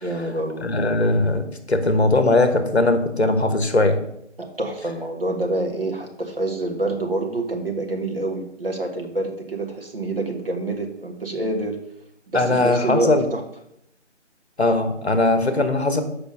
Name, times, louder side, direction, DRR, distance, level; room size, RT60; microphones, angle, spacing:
voice 1, 0.0-0.7 4.4-11.8 12.3-13.4, right 2 dB, 50° right, 2 dB, 1.5 m, -27 dB
voice 2, 0.6-1.4 1.7-4.0 12.3-13.3 14.6-16.0, left 2 dB, 60° left, 8 dB, 1.1 m, -19 dB
6.8 x 5.1 x 5.5 m, 0.77 s
figure-of-eight pair, 165°, 37 cm